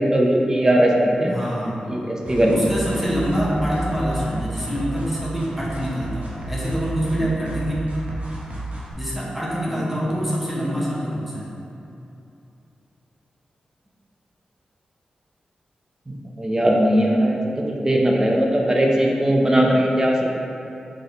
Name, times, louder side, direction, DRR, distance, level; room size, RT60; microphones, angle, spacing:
voice 1, 0.0-1.3 1.9-2.6 9.8-9.9 16.1-20.3, right 1 dB, 25° right, 0 dB, 0.9 m, -19 dB
voice 2, 1.3-1.8 2.5-7.8 9.0-11.5, equal, 10° right, -7 dB, 1.5 m, -25 dB
sound 1, 2.3-8.9, right 1 dB, 60° right, 1.3 m, -32 dB
6.3 x 4.0 x 3.9 m, 2.8 s
cardioid pair, 60°, 3 cm